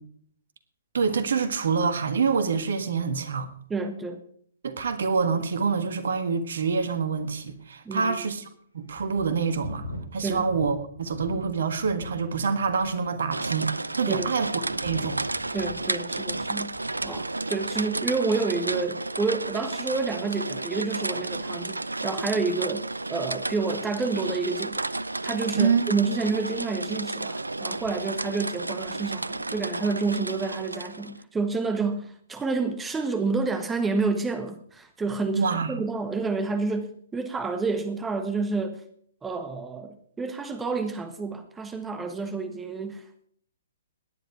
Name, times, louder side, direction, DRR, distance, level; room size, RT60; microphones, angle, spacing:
voice 1, 0.9-3.5 4.6-8.5 8.7-9.8 10.1-15.2 25.5-25.8 35.3-35.8, right 5 dB, 55° right, 11 dB, 1.7 m, -26 dB
voice 2, 3.7-4.2 7.8-8.3 10.2-10.5 14.1-14.3 15.5-16.8 17.0-24.8 25.2-38.8 39.2-43.0, right 4 dB, 10° right, 8 dB, 1.3 m, -29 dB
sound 1, 6.8-6.9 7.5-7.6 8.2-8.3 8.9-12.3 12.6-13.1 13.8-17.3 17.5-17.9, equal, 80° left, 3.0 m, -42 dB
sound 2, 13.3-31.2, right 2 dB, 80° right, 0.5 m, -32 dB
17.5 x 10.5 x 4.7 m, 0.62 s
figure-of-eight pair, 120°, 0 cm